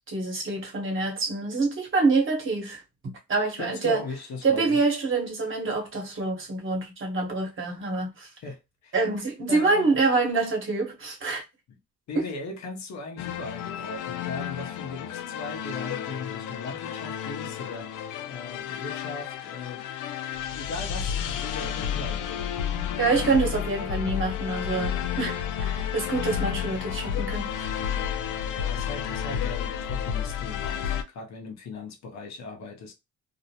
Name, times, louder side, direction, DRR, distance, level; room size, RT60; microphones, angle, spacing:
voice 1, 0.1-4.0 4.4-8.3 8.9-11.4 12.1-12.2 23.0-27.7, right 3 dB, 40° right, 1.1 m, -26 dB
voice 2, 3.6-4.8 8.4-8.9 9.5-10.0 12.1-19.8 20.5-22.5 28.5-32.9, left 3 dB, 65° left, 0.8 m, -38 dB
sound 1, 13.2-31.0, left 9 dB, 85° left, 0.4 m, -31 dB
2.5 x 2.0 x 2.8 m
cardioid pair, 90°, 30 cm